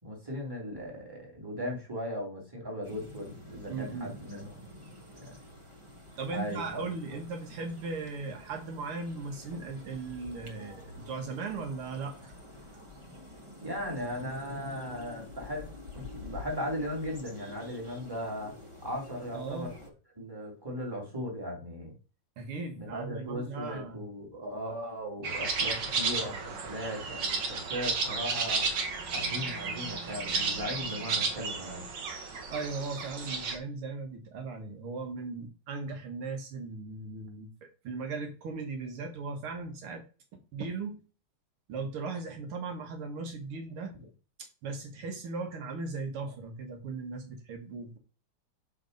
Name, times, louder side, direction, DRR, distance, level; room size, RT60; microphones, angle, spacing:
voice 1, 0.0-4.5 5.2-5.4 6.3-6.8 7.1-7.2 13.6-18.6 18.8-19.7 20.2-21.9 22.7-28.7 29.1-31.8, equal, 10° right, -1 dB, 2.4 m, -37 dB
sound 1, 2.8-19.9, left 2 dB, 25° right, 0.6 m, -48 dB
voice 2, 3.7-4.1 6.2-12.3 19.3-19.7 22.4-24.0 32.5-37.5 37.8-40.0 40.3-41.0 41.7-43.9 44.4-48.0, right 4 dB, 85° right, 4 dB, 2.2 m, -38 dB
sound 2, 25.2-33.6, right 4 dB, 60° right, 1.6 m, -33 dB
6.5 x 4.2 x 5.2 m, 0.35 s
omnidirectional pair, 2.3 m